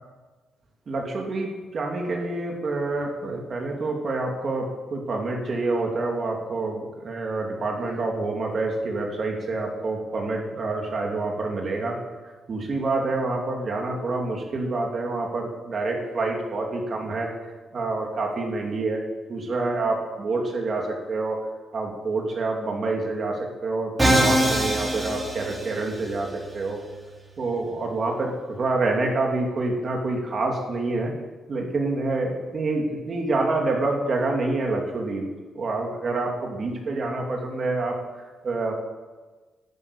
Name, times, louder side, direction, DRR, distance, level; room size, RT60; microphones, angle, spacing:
voice 1, 0.9-12.0 12.5-17.3 17.7-19.0 19.3-21.4 21.7-26.8 27.4-31.1 31.5-35.2 35.5-38.0 38.4-38.7, right 3 dB, 35° right, 0 dB, 2.9 m, -27 dB
Musical instrument, 24.0-26.1, right 1 dB, 10° right, 2.8 m, -22 dB
13.5 x 12.0 x 8.6 m, 1.3 s
cardioid pair, 155°, 0 cm